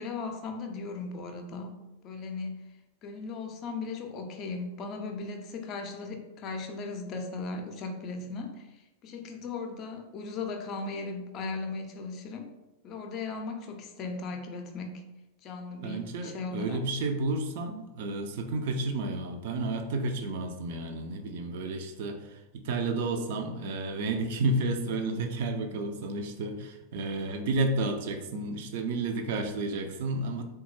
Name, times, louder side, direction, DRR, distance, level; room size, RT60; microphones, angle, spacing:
voice 1, 0.0-1.8 2.0-2.7 3.0-12.5 12.8-15.0 15.4-16.8, left 3 dB, 35° left, 5 dB, 0.5 m, -37 dB
voice 2, 15.8-30.4, right 2 dB, 50° right, 6 dB, 0.4 m, -31 dB
3.7 x 2.3 x 2.9 m, 0.98 s
figure-of-eight pair, 90°, 0 cm